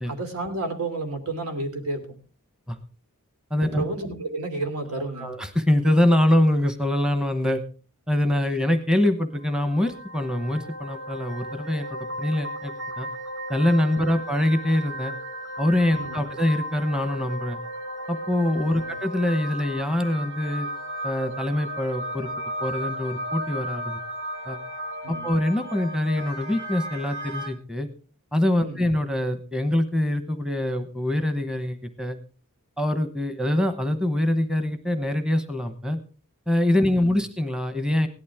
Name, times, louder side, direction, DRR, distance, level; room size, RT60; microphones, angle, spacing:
voice 1, 0.1-2.2 3.6-5.4 13.9-14.0 15.9-16.3 18.7-19.0 25.0-25.3 28.6-28.9 36.8-37.2, right 2 dB, 85° right, 6 dB, 2.9 m, -32 dB
voice 2, 3.5-3.9 5.2-7.6 8.1-13.1 13.5-15.1 15.6-17.6 18.1-20.7 21.0-22.3 22.6-24.0 24.5-24.6 25.1-27.9 28.3-32.2 32.8-36.0 36.5-38.1, left 1 dB, 5° right, 9 dB, 0.9 m, -24 dB
sound 1, 9.4-27.5, equal, 55° right, 2.9 m, -35 dB
17.0 x 11.5 x 3.5 m, 0.36 s
head